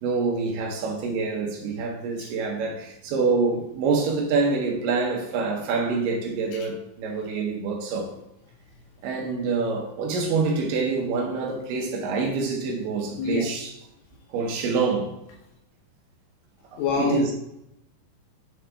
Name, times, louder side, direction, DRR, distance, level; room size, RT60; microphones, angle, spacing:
voice 1, 0.0-8.1 9.0-13.7 14.3-15.1 16.7-17.3, right 4 dB, 90° right, 1.9 m, -26 dB
voice 2, 16.8-17.3, left 5 dB, 75° left, 2.7 m, -26 dB
7.7 x 3.8 x 3.4 m
omnidirectional pair, 5.3 m